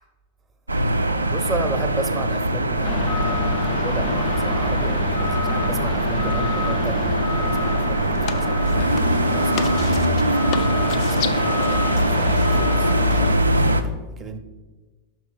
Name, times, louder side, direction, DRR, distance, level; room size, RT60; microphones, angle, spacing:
sound 1, 0.7-13.8, right 1 dB, 80° right, 0.4 m, -22 dB
voice 1, 1.3-3.2 3.7-8.6 9.3-13.8 14.2-14.4, right 3 dB, 20° right, 5 dB, 0.7 m, -33 dB
sound 2, 2.8-13.3, left 8 dB, 40° left, 0.5 m, -29 dB
5.8 x 4.6 x 6.3 m, 1.2 s
figure-of-eight pair, 90°, 0 cm